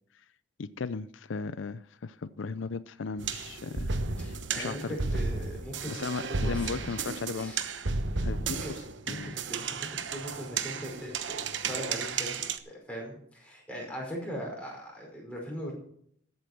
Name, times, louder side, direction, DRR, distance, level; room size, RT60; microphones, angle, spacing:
voice 1, 0.6-3.9 4.2-5.0 5.9-7.7 8.2-9.4, left 4 dB, 80° left, 15 dB, 0.5 m, -37 dB
sound 1, 3.2-12.6, right 4 dB, 75° right, 1.0 m, -33 dB
voice 2, 4.2-7.0 7.3-7.6 8.4-8.7 9.0-15.7, equal, 5° left, -2 dB, 5.0 m, -40 dB
14.0 x 8.4 x 6.0 m, 0.64 s
head